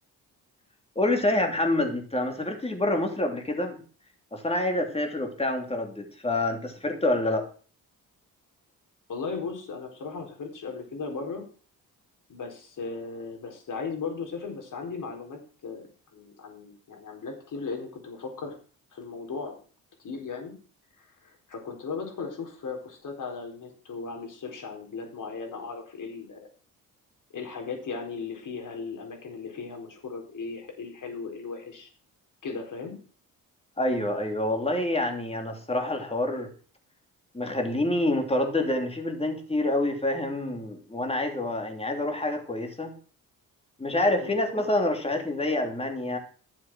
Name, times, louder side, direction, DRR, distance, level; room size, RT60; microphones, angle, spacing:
voice 1, 0.9-3.8 4.3-7.4 33.8-36.5 37.3-42.9 43.8-46.2, left 1 dB, 15° left, 4 dB, 2.9 m, -27 dB
voice 2, 9.1-11.4 12.3-15.8 16.1-18.5 18.9-19.5 20.0-20.5 21.0-26.5 27.3-31.9 32.4-33.0 44.2-44.4, left 4 dB, 60° left, 2 dB, 4.2 m, -37 dB
12.0 x 7.4 x 6.0 m, 0.40 s
cardioid pair, 80°, 36 cm